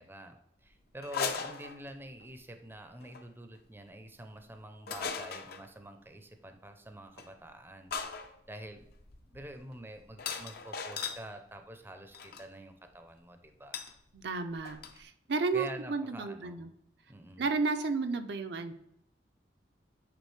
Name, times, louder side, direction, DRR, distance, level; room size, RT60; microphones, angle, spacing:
voice 1, 0.0-8.8 9.2-13.8 15.5-16.7 17.1-17.4, right 1 dB, 10° right, 7 dB, 0.5 m, -47 dB
sound 1, 1.0-2.2 3.0-3.2 4.9-5.7 7.2-7.3 7.9-11.3 12.1-12.5 13.7-13.9 14.2-14.3 14.5-15.0, left 6 dB, 55° left, 0.6 m, -38 dB
voice 2, 14.1-16.7 17.4-18.7, right 4 dB, 65° right, 7 dB, 0.5 m, -32 dB
8.4 x 3.6 x 3.2 m, 0.78 s
head